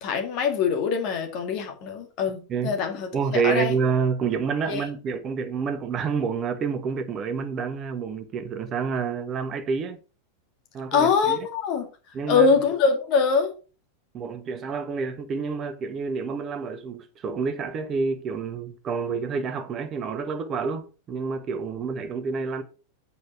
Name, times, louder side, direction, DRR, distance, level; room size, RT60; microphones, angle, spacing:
voice 1, 0.0-3.8 4.7-4.9 10.9-11.9 12.3-13.5, left 5 dB, 40° left, 2.2 m, -23 dB
voice 2, 3.1-10.0 10.7-11.4 12.1-12.5 14.1-22.6, right 5 dB, 30° right, 1.3 m, -28 dB
8.1 x 5.5 x 5.7 m
figure-of-eight pair, 90°, 0 cm